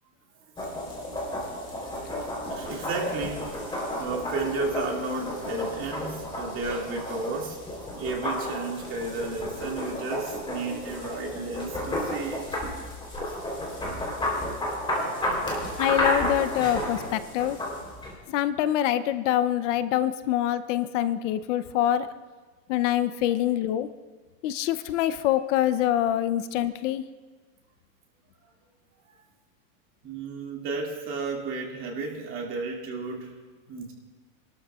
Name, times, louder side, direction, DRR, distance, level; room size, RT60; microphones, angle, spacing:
sound 1, 0.6-18.1, left 1 dB, 10° left, 3.4 m, -32 dB
voice 1, 2.5-7.6 8.0-12.7 13.8-14.0 29.1-29.2 30.0-33.3 33.7-33.9, right 3 dB, 30° right, 0 dB, 2.2 m, -33 dB
voice 2, 15.8-17.6 18.3-22.1 22.7-23.9 24.4-27.0, left 12 dB, 65° left, 13 dB, 0.7 m, -25 dB
27.5 x 12.5 x 2.4 m, 1.3 s
supercardioid pair, 150°, 41 cm